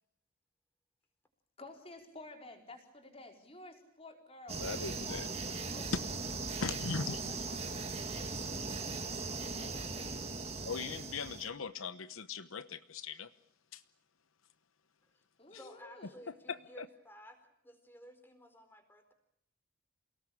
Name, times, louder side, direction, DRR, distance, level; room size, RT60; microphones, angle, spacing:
voice 1, 1.6-7.8 9.1-10.2 15.4-16.2, left 2 dB, 30° left, 3 dB, 4.7 m, -53 dB
sound 1, 4.5-11.5, right 3 dB, 30° right, 2.4 m, -39 dB
voice 2, 4.6-5.3 6.6-7.2 10.6-13.3 13.7-13.8 16.5-16.9, left 5 dB, 85° left, 12 dB, 1.0 m, -39 dB
voice 3, 15.6-19.1, equal, 10° left, 6 dB, 4.2 m, -55 dB
28.5 x 18.5 x 8.6 m, 0.72 s
head